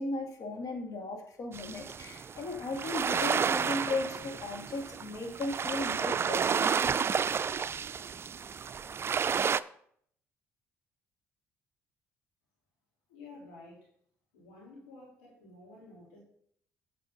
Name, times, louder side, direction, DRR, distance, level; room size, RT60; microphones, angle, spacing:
voice 1, 0.0-6.7, left 2 dB, 55° left, 2 dB, 2.3 m, -36 dB
sound 1, 1.5-9.6, right 6 dB, 35° right, 0.4 m, -31 dB
voice 2, 13.1-13.9 14.3-16.2, left 3 dB, 85° left, -5 dB, 3.5 m, -51 dB
8.6 x 7.6 x 3.9 m, 0.64 s
hypercardioid pair, 55°, 7 cm